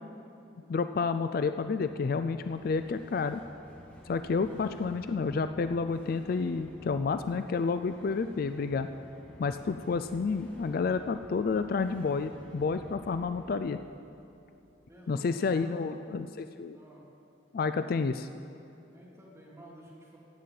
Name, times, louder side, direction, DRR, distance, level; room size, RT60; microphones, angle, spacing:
voice 1, 0.7-3.4 4.1-8.9 9.4-13.8 15.1-16.8 17.5-18.3, left 4 dB, 50° left, 10 dB, 0.4 m, -30 dB
sound 1, 1.4-15.3, equal, 10° left, 1.8 m, -53 dB
voice 2, 4.3-4.7 14.9-15.9 16.7-17.0 18.9-20.2, right 1 dB, 15° right, -5 dB, 2.5 m, -52 dB
16.5 x 5.6 x 7.6 m, 2.8 s
head